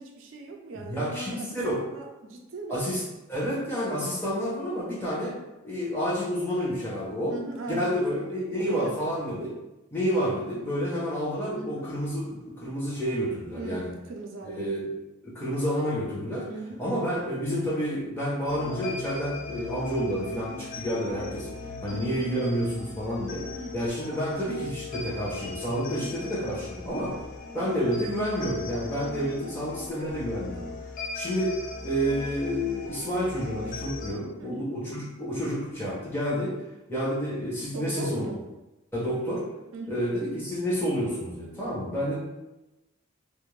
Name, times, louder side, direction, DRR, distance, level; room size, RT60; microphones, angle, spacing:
voice 1, 0.0-3.1 7.3-9.0 11.5-11.9 13.6-14.7 16.5-16.8 21.9-22.3 23.5-23.8 26.0-26.2 29.3-29.4 34.4-34.7 37.7-38.4 39.7-40.0, right 2 dB, 70° right, 1 dB, 0.4 m, -39 dB
voice 2, 0.7-1.8 2.7-3.0 3.3-5.4 5.6-7.3 7.7-9.5 9.9-13.9 14.6-14.9 15.2-16.5 16.8-21.5 21.8-23.5 23.7-27.1 27.5-30.7 31.1-31.5 31.8-36.6 36.9-38.2 38.9-39.5 39.9-42.2, equal, 10° left, -7 dB, 0.7 m, -29 dB
sound 1, 18.5-34.1, left 3 dB, 40° left, 0.3 m, -39 dB
2.4 x 2.1 x 3.1 m, 1.0 s
head